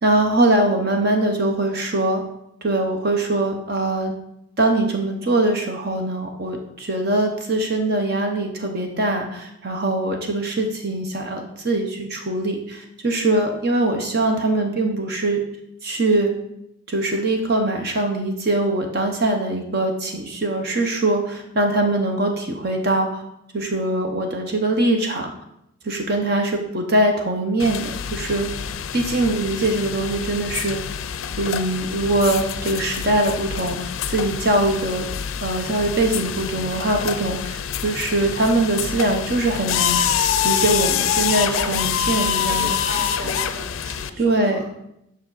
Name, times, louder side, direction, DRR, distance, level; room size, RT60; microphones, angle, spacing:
voice 1, 0.0-2.2 2.6-4.1 4.6-15.4 15.8-16.3 16.9-23.2 23.5-25.3 25.8-28.5 28.9-30.8 31.4-35.1 35.4-40.0 40.4-42.7 44.2-44.6, right 2 dB, 50° right, 3 dB, 0.8 m, -22 dB
sound 1, 27.6-44.1, left 8 dB, 75° left, 0.4 m, -26 dB
voice 2, 42.4-44.7, equal, 75° right, -2 dB, 2.1 m, -36 dB
7.6 x 5.6 x 4.0 m, 0.80 s
head